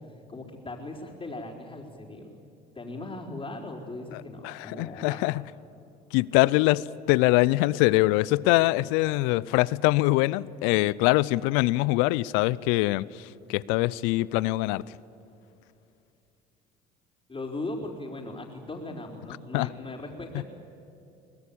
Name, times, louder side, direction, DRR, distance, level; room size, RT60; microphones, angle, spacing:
voice 1, 0.3-2.4 2.7-5.3 17.3-20.4, left 2 dB, 25° left, -7 dB, 4.2 m, -38 dB
voice 2, 4.4-5.4 6.1-14.8 19.5-19.7 20.3-20.4, left 19 dB, 75° left, 22 dB, 0.5 m, -23 dB
23.5 x 19.5 x 8.6 m, 2.7 s
hypercardioid pair, 65°, 21 cm